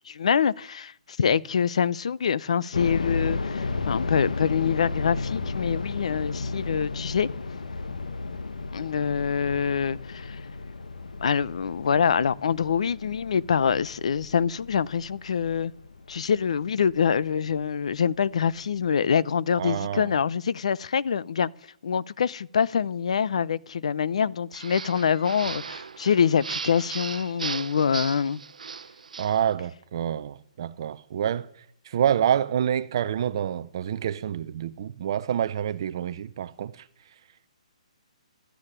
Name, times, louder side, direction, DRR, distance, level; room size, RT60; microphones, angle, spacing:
voice 1, 0.1-7.3 8.7-10.4 11.2-15.7 16.1-21.5 21.8-28.4, left 7 dB, 55° left, 0.7 m, -25 dB
sound 1, 2.7-17.6 17.9-18.0 18.6-18.9, left 3 dB, 90° left, 1.2 m, -33 dB
voice 2, 19.6-20.1 29.2-31.5 31.8-36.9, right 9 dB, 40° right, 0.6 m, -27 dB
sound 2, 24.5-29.4, right 5 dB, 90° right, 0.7 m, -37 dB
12.5 x 9.8 x 9.9 m
hypercardioid pair, 170°, 4 cm